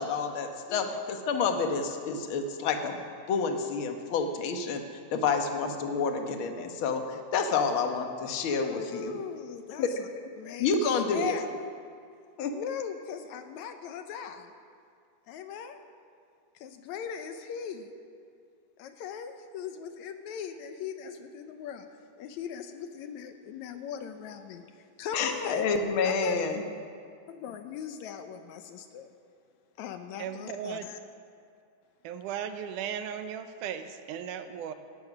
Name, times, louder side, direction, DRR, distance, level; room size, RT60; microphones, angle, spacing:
voice 1, 0.0-3.0 3.3-4.8 5.1-9.1 9.8-9.9 10.6-11.4 12.4-12.5 25.1-26.6, left 5 dB, 55° left, 5 dB, 1.5 m, -29 dB
voice 2, 8.5-10.1 10.4-11.5 12.5-14.5 15.3-15.8 16.6-17.9 18.8-21.9 22.2-25.7 26.0-26.5 27.3-29.1 29.8-31.0, left 7 dB, 75° left, 8 dB, 1.9 m, -39 dB
voice 3, 30.2-30.9 32.0-34.7, right 8 dB, 80° right, 9 dB, 2.3 m, -36 dB
17.5 x 12.5 x 6.1 m, 2.3 s
omnidirectional pair, 3.7 m